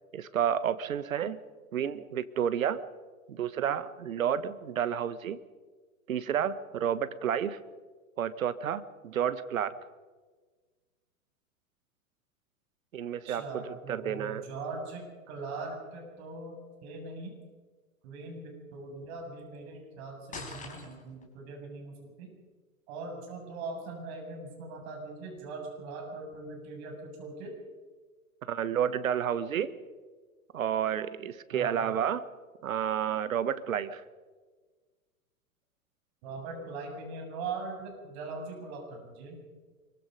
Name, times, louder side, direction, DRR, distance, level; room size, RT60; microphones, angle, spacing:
voice 1, 0.1-1.4 1.7-2.8 3.3-5.4 6.1-7.6 8.2-9.7 12.9-14.5 28.5-29.8 30.5-32.3 32.6-34.0, right 9 dB, 70° right, 14 dB, 1.5 m, -30 dB
voice 2, 13.2-16.5 16.8-17.4 18.0-22.4 22.9-27.5 31.5-31.8 36.2-39.4, right 3 dB, 50° right, 2 dB, 7.4 m, -41 dB
sound 1, 20.3-21.3, left 4 dB, 15° left, 4.4 m, -42 dB
24.5 x 23.0 x 5.3 m, 1.4 s
figure-of-eight pair, 105°, 43 cm